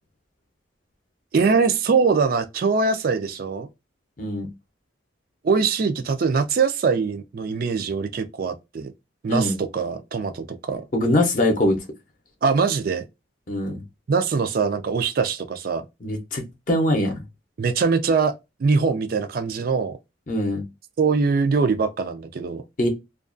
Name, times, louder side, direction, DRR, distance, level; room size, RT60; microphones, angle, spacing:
voice 1, 1.3-3.7 5.4-8.9 9.2-10.8 12.4-13.0 14.1-15.8 17.6-18.3 18.6-19.9 21.0-22.6, right 5 dB, 50° right, 0.3 m, -22 dB
voice 2, 4.2-4.5 9.3-9.6 10.9-11.8 13.5-13.8 16.0-17.2 20.3-20.6 22.8-22.9, left 1 dB, 45° left, 0.6 m, -22 dB
2.4 x 2.2 x 2.4 m
head